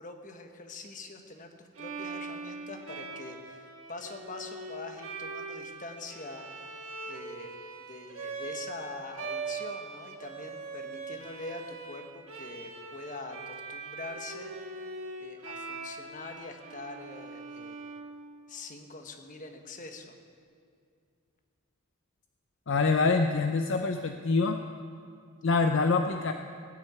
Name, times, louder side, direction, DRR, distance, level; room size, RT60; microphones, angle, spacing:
voice 1, 0.0-7.5 7.9-14.5 15.2-17.8 18.5-20.1, left 3 dB, 35° left, 4 dB, 1.3 m, -44 dB
Bowed string instrument, 1.7-18.7, right 4 dB, 70° right, 1.4 m, -41 dB
voice 2, 22.7-24.6 25.4-26.3, left 4 dB, 55° left, 6 dB, 0.6 m, -25 dB
18.5 x 6.5 x 9.0 m, 2.3 s
head